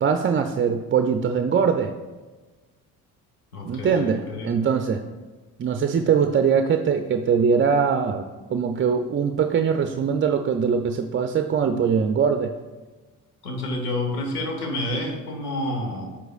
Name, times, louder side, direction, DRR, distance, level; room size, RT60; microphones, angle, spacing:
voice 1, 0.0-1.9 3.7-5.0 5.6-8.2 8.5-12.5, right 6 dB, 30° right, 7 dB, 0.5 m, -22 dB
voice 2, 3.5-4.6 13.4-16.2, left 1 dB, 85° left, 2 dB, 1.3 m, -29 dB
8.7 x 7.8 x 2.4 m, 1.3 s
hypercardioid pair, 45°, 45 cm